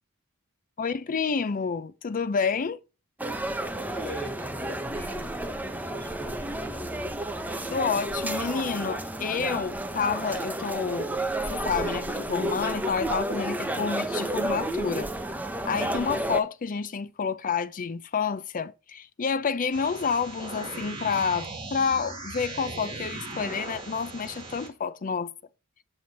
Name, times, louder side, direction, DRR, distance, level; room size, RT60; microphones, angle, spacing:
voice 1, 0.8-2.8 7.7-11.1 11.5-15.1 15.6-25.3, left 5 dB, 40° left, 0.5 m, -29 dB
sound 1, 3.2-16.4, right 1 dB, 10° right, 0.7 m, -31 dB
voice 2, 3.8-7.0, equal, 10° left, 1.2 m, -41 dB
sound 2, 19.7-24.7, right 2 dB, 25° right, 1.9 m, -38 dB
7.7 x 6.8 x 4.1 m
head